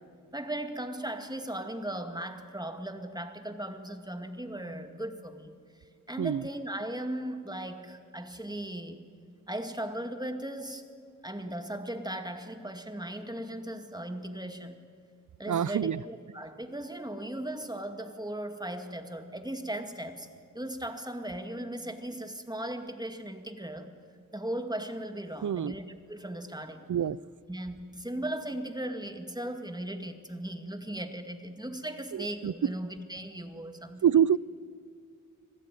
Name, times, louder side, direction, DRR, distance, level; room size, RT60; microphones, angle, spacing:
voice 1, 0.3-5.6 6.1-9.0 9.5-10.9 11.2-14.8 15.4-20.3 20.5-23.9 24.3-26.9 27.5-34.0, right 1 dB, 10° right, 2.2 m, -37 dB
voice 2, 15.5-16.0 25.4-25.8 26.9-27.2 32.1-32.7 34.0-34.4, right 9 dB, 65° right, 0.5 m, -26 dB
25.0 x 17.0 x 9.3 m
wide cardioid pair, 50°, 33 cm